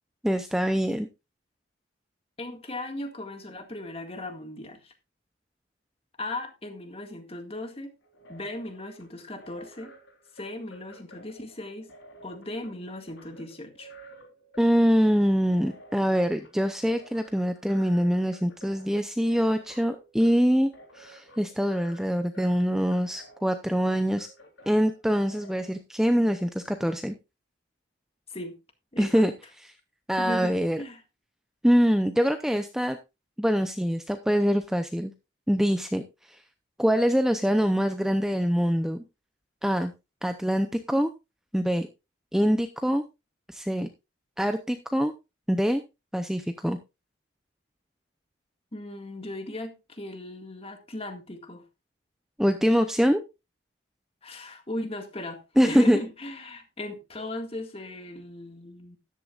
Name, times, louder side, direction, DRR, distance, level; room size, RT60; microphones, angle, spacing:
voice 1, 0.2-1.1 14.6-24.3 24.7-27.2 29.0-29.3 30.1-30.8 31.6-33.0 33.4-35.1 35.5-36.0 36.3-36.4 36.8-39.0 39.6-39.9 40.2-41.1 41.5-41.9 42.3-43.0 43.5-43.9 44.4-45.1 45.5-45.8 46.1-46.8 52.4-53.2 55.6-56.0, equal, ahead, 0.6 m, -24 dB
voice 2, 2.4-4.9 6.2-7.9 8.3-10.0 10.3-11.9 12.2-13.9 28.3-28.6 28.9-29.2 30.2-31.0 48.7-51.6 54.2-59.0, left 1 dB, 30° left, 1.9 m, -37 dB
sound 1, 8.0-25.7, right 1 dB, 70° left, 3.7 m, -52 dB
13.5 x 11.0 x 2.4 m
head